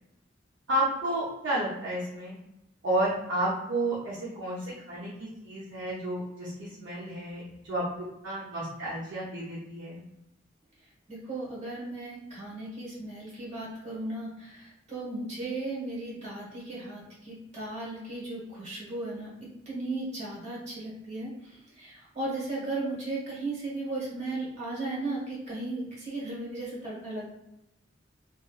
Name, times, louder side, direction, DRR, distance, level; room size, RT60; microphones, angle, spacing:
voice 1, 0.7-2.3 2.8-10.0, right 1 dB, 70° right, -8 dB, 0.7 m, -31 dB
voice 2, 11.1-27.3, right 2 dB, 35° right, -6 dB, 1.2 m, -36 dB
2.9 x 2.4 x 2.3 m, 0.89 s
head